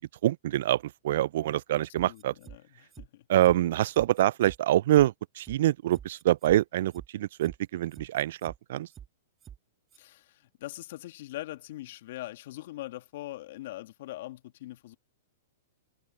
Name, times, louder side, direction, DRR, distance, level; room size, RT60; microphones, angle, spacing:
voice 1, 0.2-2.3 3.3-8.9, right 13 dB, 60° right, 0.3 m, -25 dB
voice 2, 1.7-3.3 9.9-15.0, left 16 dB, 60° left, 1.9 m, -42 dB
sound 1, 2.0-2.6 2.9-3.1 3.4-3.6 3.9-4.6 4.9-5.1 5.4-5.6 5.9-6.6 6.9-7.1 7.4-7.6 7.9-8.6 8.9-9.1 9.4-9.6 9.9-10.0, right 9 dB, 25° right, 2.2 m, -47 dB
hypercardioid pair, 125°, 0 cm